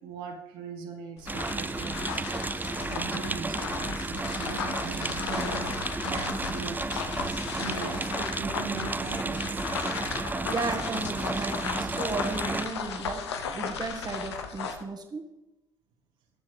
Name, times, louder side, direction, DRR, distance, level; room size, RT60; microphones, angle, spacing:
voice 1, 0.0-2.2 2.5-2.6 2.9-5.6 6.0-7.3 7.6-9.7 10.1-10.2, right 5 dB, 70° right, 0 dB, 1.9 m, -40 dB
sound 1, 1.2-14.8, left 6 dB, 85° left, 0.8 m, -35 dB
sound 2, 1.3-12.7, right 3 dB, 15° right, 0.5 m, -33 dB
voice 2, 10.4-15.3, right 3 dB, 30° right, 4 dB, 1.5 m, -34 dB
18.5 x 7.4 x 3.3 m, 0.94 s
hypercardioid pair, 55°, 14 cm